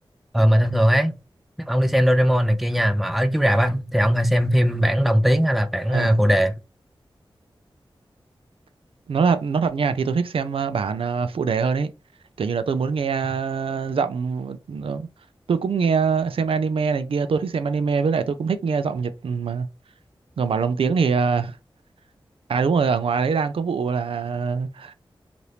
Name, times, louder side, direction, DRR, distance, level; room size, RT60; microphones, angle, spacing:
voice 1, 0.3-1.1 1.7-6.5, equal, ahead, 0.4 m, -19 dB
voice 2, 5.9-6.2 9.1-11.9 12.4-15.1 15.5-19.7 20.4-21.5 22.5-24.9, right 5 dB, 85° right, 0.4 m, -23 dB
2.8 x 2.5 x 3.3 m
wide cardioid pair, 65°, 9 cm